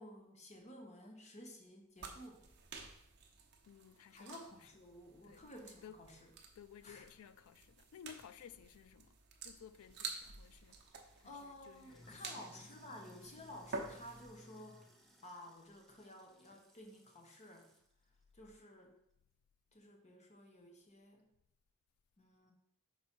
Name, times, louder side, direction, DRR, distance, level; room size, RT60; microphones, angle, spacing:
voice 1, 0.0-2.4 4.1-6.3 6.8-7.0 11.2-14.8 15.2-17.7 18.3-18.9 19.7-21.3 22.2-22.5, left 1 dB, 30° left, 1.0 m, -54 dB
sound 1, 2.0-14.4, right 4 dB, 50° right, 0.8 m, -51 dB
voice 2, 3.6-4.4 5.2-5.5 5.8-6.0 6.6-10.9 11.2-12.5, left 8 dB, 75° left, 0.4 m, -57 dB
Sink (filling or washing), 9.8-17.9, left 1 dB, ahead, 0.5 m, -63 dB
5.9 x 4.2 x 4.4 m
head